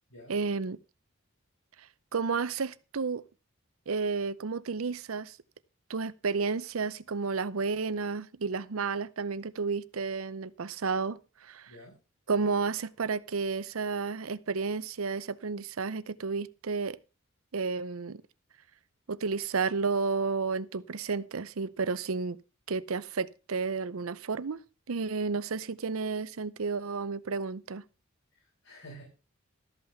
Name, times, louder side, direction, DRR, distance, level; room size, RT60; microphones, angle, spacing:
voice 1, 0.3-0.8 2.1-3.2 3.9-5.4 5.9-11.7 12.3-17.0 17.5-18.2 19.1-22.4 22.7-24.6 24.9-27.8, right 4 dB, 85° right, 0.7 m, -32 dB
voice 2, 11.7-12.0 28.3-29.0, equal, 80° left, 5.2 m, -50 dB
13.0 x 5.7 x 6.5 m
head